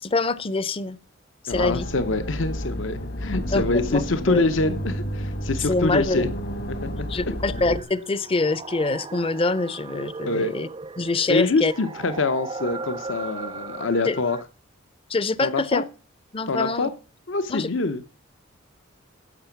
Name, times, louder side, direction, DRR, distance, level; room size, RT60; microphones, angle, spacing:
voice 1, 0.0-1.0 1.4-1.9 3.5-3.6 3.9-4.4 5.7-6.3 7.1-10.7 11.0-11.7 14.0-14.2 15.1-15.8 16.3-16.9 17.5-17.7, left 3 dB, 25° left, 0.6 m, -25 dB
voice 2, 1.5-6.3 6.7-7.1 10.3-10.5 11.3-14.4 15.4-15.8 16.5-16.9 17.3-18.0, left 3 dB, 70° left, 0.8 m, -25 dB
sound 1, 1.5-7.8, equal, 50° left, 1.5 m, -31 dB
sound 2, 7.5-14.4, right 3 dB, 25° right, 0.4 m, -37 dB
11.0 x 7.7 x 5.9 m
head